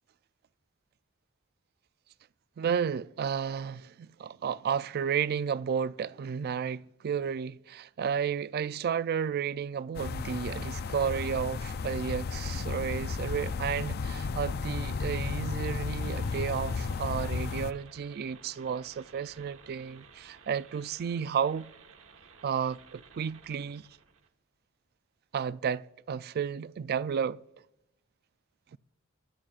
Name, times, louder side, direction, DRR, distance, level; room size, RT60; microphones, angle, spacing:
voice 1, 2.6-21.7 22.4-23.9 25.3-27.4, right 7 dB, 50° right, 0.3 m, -32 dB
sound 1, 9.9-17.7, left 5 dB, 50° left, 0.4 m, -34 dB
sound 2, 16.0-24.3, right 5 dB, 65° right, 1.2 m, -55 dB
23.0 x 12.0 x 2.4 m
head